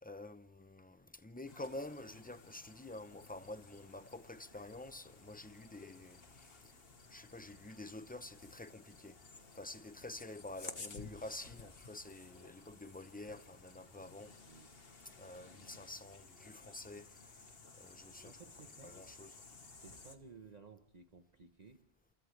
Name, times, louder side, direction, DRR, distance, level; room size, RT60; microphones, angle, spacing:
voice 1, 0.0-6.5 7.1-9.2 9.5-14.4 15.2-17.3 17.8-18.4 18.8-19.3, left 2 dB, 10° left, 0.6 m, -49 dB
sound 1, 1.5-20.2, left 4 dB, 70° left, 1.7 m, -55 dB
voice 2, 18.2-19.0 19.7-21.8, right 5 dB, 45° right, 1.1 m, -57 dB
30.0 x 27.5 x 3.3 m
omnidirectional pair, 1.0 m